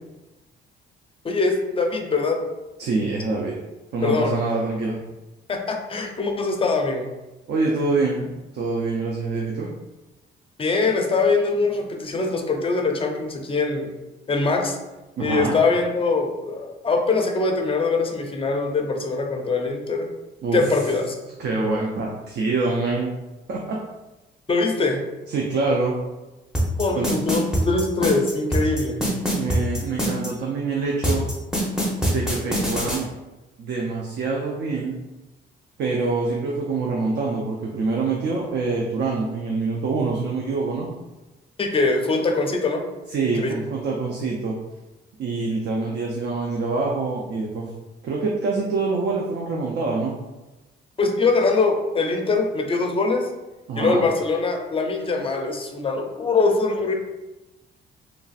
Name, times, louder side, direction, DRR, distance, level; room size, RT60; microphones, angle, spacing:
voice 1, 1.2-2.4 4.0-4.4 5.5-7.1 10.6-13.9 14.3-14.8 15.2-20.1 20.5-21.1 24.5-25.0 26.8-29.1 41.6-42.8 43.4-43.6 51.0-53.3 53.8-56.9, left 3 dB, 30° left, 3 dB, 0.5 m, -22 dB
voice 2, 2.8-3.5 3.9-5.0 7.5-8.3 8.5-9.7 15.2-15.6 20.4-20.6 21.4-23.1 23.5-23.8 25.3-25.9 26.9-27.1 29.3-31.3 32.1-33.1 33.6-35.0 35.8-40.9 43.1-44.6 45.2-47.7 48.0-50.1 53.7-54.0, right 3 dB, 60° right, -2 dB, 0.5 m, -25 dB
sound 1, 26.5-30.3 31.0-33.0, right 1 dB, 5° right, 0.8 m, -23 dB
3.1 x 2.4 x 2.4 m, 1.1 s
cardioid pair, 90°, 20 cm